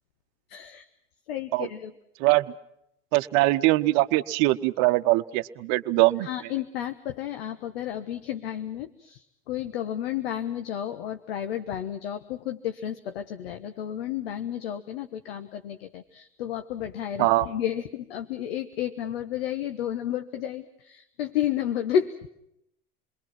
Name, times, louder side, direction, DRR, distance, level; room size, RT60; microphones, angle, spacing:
voice 1, 0.5-0.9 1.3-1.9 6.2-22.2, left 10 dB, 80° left, 8 dB, 1.2 m, -32 dB
voice 2, 3.1-6.3 17.2-17.5, right 19 dB, 65° right, 11 dB, 1.0 m, -22 dB
28.5 x 22.0 x 5.9 m, 0.78 s
hypercardioid pair, 80°, 29 cm